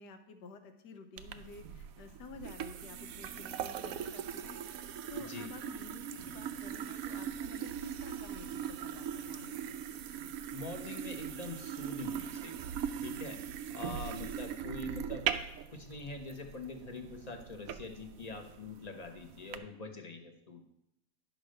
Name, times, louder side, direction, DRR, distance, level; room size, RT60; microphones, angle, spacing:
voice 1, 0.0-4.6 5.1-9.8 13.4-13.5 14.0-14.1, left 4 dB, 75° left, 7 dB, 1.5 m, -51 dB
sound 1, 1.2-19.6, right 9 dB, 70° right, 0.9 m, -40 dB
voice 2, 5.1-5.5 10.5-12.5 13.0-13.4 13.7-15.4 15.7-20.6, left 3 dB, 30° left, 4 dB, 0.9 m, -44 dB
10.5 x 4.9 x 6.5 m, 0.80 s
omnidirectional pair, 1.9 m